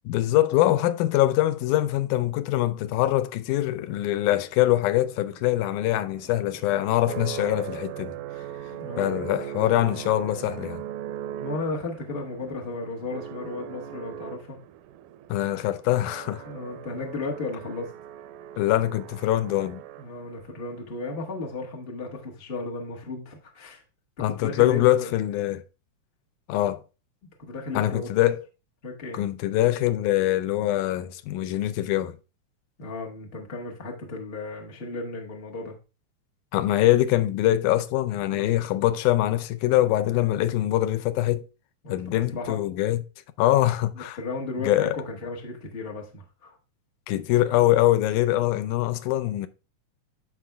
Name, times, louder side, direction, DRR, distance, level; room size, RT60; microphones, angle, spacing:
voice 1, 0.1-8.2 9.0-10.8 15.3-16.4 18.6-19.8 24.2-25.6 26.5-26.8 27.8-28.4 29.1-32.1 36.5-41.5 41.9-43.0 43.4-44.2 44.6-45.0 47.1-49.5, left 14 dB, 80° left, 2.0 m, -23 dB
sound 1, 4.3-20.5, right 11 dB, 80° right, 1.9 m, -40 dB
voice 2, 8.7-9.2 11.4-14.6 16.4-17.9 20.0-23.8 24.3-25.1 27.4-28.3 28.8-29.2 32.8-35.7 38.3-38.6 41.8-42.6 43.9-46.6, left 3 dB, 65° left, 0.5 m, -35 dB
13.0 x 4.5 x 2.2 m
omnidirectional pair, 3.6 m